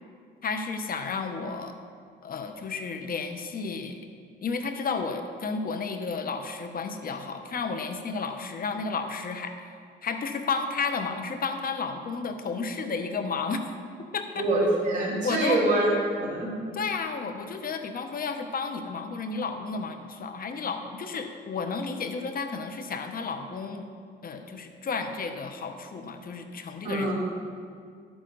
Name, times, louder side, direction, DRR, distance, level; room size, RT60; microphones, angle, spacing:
voice 1, 0.4-1.7 2.2-4.0 4.4-13.6 14.1-14.4 15.2-15.6 16.7-23.9 24.2-27.1, left 4 dB, 45° left, 7 dB, 0.9 m, -32 dB
voice 2, 14.4-15.9 16.2-16.5 26.8-27.1, right 2 dB, 40° right, -7 dB, 2.9 m, -25 dB
10.5 x 8.8 x 4.0 m, 2.1 s
cardioid pair, 90°, 20 cm